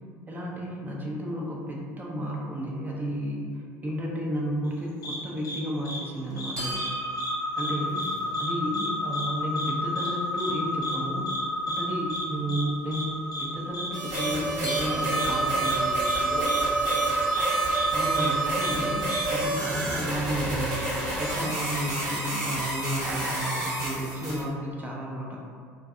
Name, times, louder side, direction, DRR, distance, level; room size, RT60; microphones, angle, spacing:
voice 1, 0.3-6.9 7.6-8.1 8.4-15.8 17.9-20.8 21.2-25.4, equal, 20° right, -3 dB, 0.5 m, -32 dB
sound 1, 5.0-5.2 5.4-5.6 5.8-6.0 6.4-6.9 7.2-7.3 7.6-8.1 8.3-8.5 8.7-8.9 9.1-9.3 9.6-9.7 10.0-10.1 10.4-10.5 10.8-10.9 11.3-11.4 11.7-11.8 12.1-12.2 12.5-12.6 12.9-13.0 13.3-13.4 13.7-13.9 14.1-14.3 14.7-14.8 15.2-15.3 15.6-15.8 16.0-16.2 16.4-16.6 16.9-17.0 17.3-17.4 17.7-17.8 18.1-18.3 18.6-18.7 19.1-19.2, left 1 dB, 45° left, 0.7 m, -35 dB
sound 2, 6.6-19.1, right 2 dB, 80° right, 0.7 m, -30 dB
voice 2, 7.7-8.7 14.6-18.0, left 1 dB, 80° left, -8 dB, 0.8 m, -41 dB
sound 3, 13.9-24.4, right 1 dB, 50° right, 0.8 m, -30 dB
2.6 x 2.2 x 2.4 m, 2.1 s
figure-of-eight pair, 65°, 9 cm